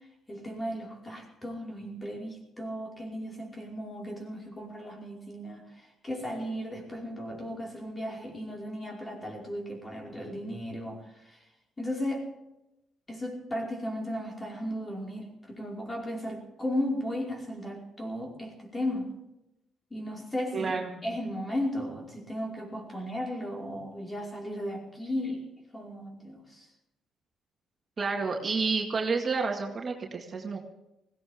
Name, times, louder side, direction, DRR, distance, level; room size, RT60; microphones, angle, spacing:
voice 1, 0.3-5.6 6.0-11.4 11.8-12.3 13.1-19.1 19.9-20.7 21.0-25.4 25.7-26.6, equal, 20° left, -1 dB, 5.1 m, -35 dB
voice 2, 20.5-21.0 28.0-30.6, right 4 dB, 40° right, 1 dB, 2.1 m, -30 dB
20.5 x 16.5 x 3.7 m, 0.88 s
cardioid pair, 90°, 0 cm